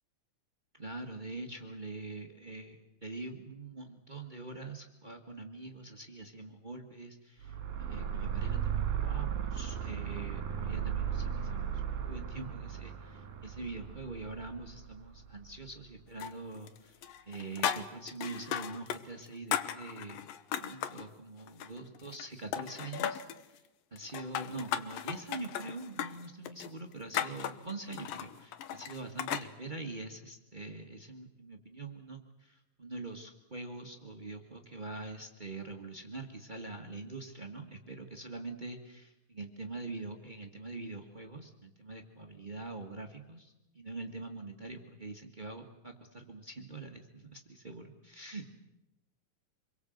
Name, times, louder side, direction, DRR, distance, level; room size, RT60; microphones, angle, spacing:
voice 1, 0.7-17.0 17.3-20.3 20.6-23.6 23.9-48.5, right 3 dB, 85° right, 4 dB, 0.4 m, -44 dB
sound 1, 7.4-15.7, right 8 dB, 65° right, 3.6 m, -36 dB
sound 2, 16.2-16.8 17.0-19.0 19.3-21.1 21.5-22.3 22.5-23.4 24.0-29.5, left 10 dB, 80° left, 2.7 m, -36 dB
27.0 x 22.5 x 7.9 m, 0.96 s
omnidirectional pair, 4.0 m